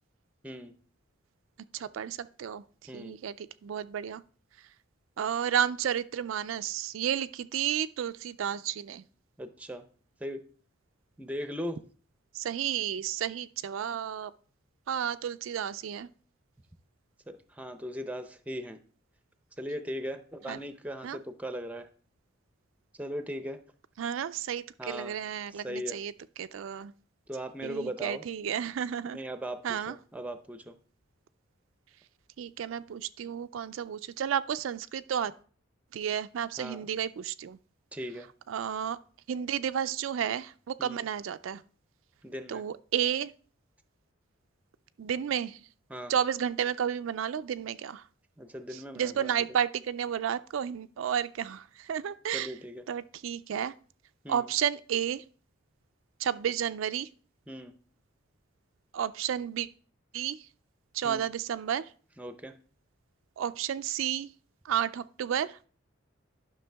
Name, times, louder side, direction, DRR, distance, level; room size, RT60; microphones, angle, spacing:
voice 1, 0.4-0.7 2.9-3.1 9.4-9.8 10.2-10.4 11.2-11.8 17.3-18.8 19.6-21.9 23.0-23.6 24.8-25.2 25.6-26.0 27.3-28.2 29.1-30.8 36.6-36.9 37.9-38.3 40.8-41.1 42.2-42.6 45.9-46.1 48.4-49.3 52.3-52.8 54.2-54.5 57.5-57.8 61.0-61.3 62.2-62.5, equal, 5° right, 0.6 m, -38 dB
voice 2, 1.7-4.2 5.2-9.0 12.3-14.3 14.9-16.1 20.5-20.6 21.0-21.2 24.0-26.1 26.4-26.9 27.6-29.2 29.6-30.0 32.4-35.3 35.9-37.6 38.5-39.0 39.3-41.6 42.5-43.3 45.0-45.6 46.1-48.0 48.7-52.5 52.9-53.7 54.3-55.2 56.2-57.1 58.9-59.7 60.1-60.4 60.9-61.9 63.4-64.3 64.6-65.6, right 9 dB, 75° right, 0.4 m, -32 dB
10.5 x 6.0 x 3.4 m
head